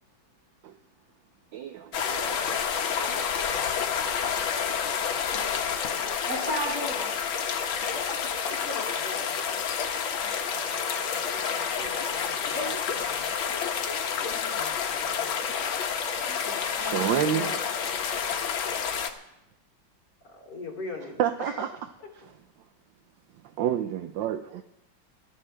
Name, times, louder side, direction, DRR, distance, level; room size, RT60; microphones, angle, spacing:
voice 1, 1.5-2.4 16.8-17.5 21.2-21.7 23.6-24.6, right 10 dB, 75° right, 8 dB, 1.3 m, -28 dB
sound 1, 1.9-19.1, left 7 dB, 80° left, 1.8 m, -29 dB
voice 2, 5.0-5.7 6.2-7.1 12.5-12.8 16.2-17.6, equal, 45° right, -6 dB, 7.4 m, -36 dB
voice 3, 5.8-6.5 8.4-9.7 10.5-13.2 14.2-15.3 20.3-21.5, left 2 dB, 55° left, -3 dB, 3.8 m, -43 dB
21.0 x 14.5 x 3.4 m, 0.92 s
omnidirectional pair, 2.2 m